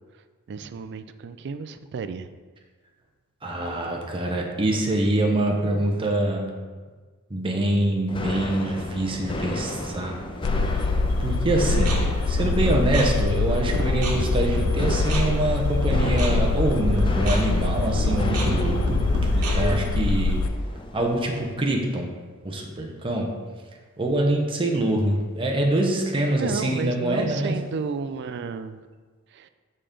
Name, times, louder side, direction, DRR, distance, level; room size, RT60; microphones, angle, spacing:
voice 1, 0.5-2.4 26.4-28.8 29.3-29.5, right 5 dB, 50° right, 11 dB, 0.3 m, -32 dB
voice 2, 3.4-6.5 7.3-10.2 11.2-11.9 12.3-20.4 20.9-22.1 22.4-23.3 24.0-27.6, right 1 dB, 25° right, 0 dB, 0.7 m, -25 dB
sound 1, 8.1-21.5, left 1 dB, 25° left, 0.5 m, -34 dB
sound 2, 10.4-20.5, left 3 dB, 75° left, 0.4 m, -24 dB
sound 3, 11.6-19.8, equal, 80° right, 1.1 m, -28 dB
6.7 x 5.0 x 3.8 m, 1.4 s
head